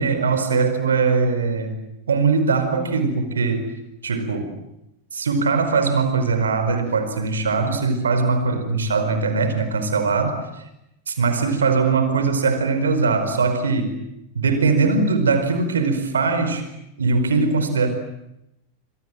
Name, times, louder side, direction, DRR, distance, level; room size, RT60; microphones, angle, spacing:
voice 1, 0.0-1.8 2.1-3.7 4.0-4.5 5.1-10.5 11.1-13.9 14.3-16.7 17.0-17.9, right 4 dB, 70° right, 9 dB, 4.8 m, -21 dB
27.5 x 26.5 x 7.7 m, 0.83 s
figure-of-eight pair, 90°, 0 cm